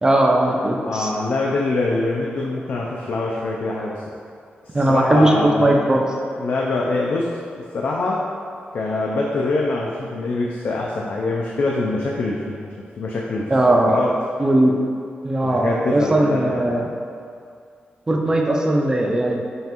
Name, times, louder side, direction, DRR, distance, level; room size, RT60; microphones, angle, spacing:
voice 1, 0.0-1.1 4.7-6.0 13.5-14.0 14.4-14.8 15.2-16.9 18.1-19.4, right 1 dB, 20° right, 1 dB, 0.3 m, -18 dB
voice 2, 0.9-4.0 4.6-5.9 6.4-7.3 7.7-8.2 8.7-12.7 13.0-13.5 13.9-14.1 15.4-16.8, left 2 dB, 65° left, -3 dB, 0.3 m, -24 dB
5.2 x 2.4 x 2.9 m, 2.4 s
wide cardioid pair, 160°, 3 cm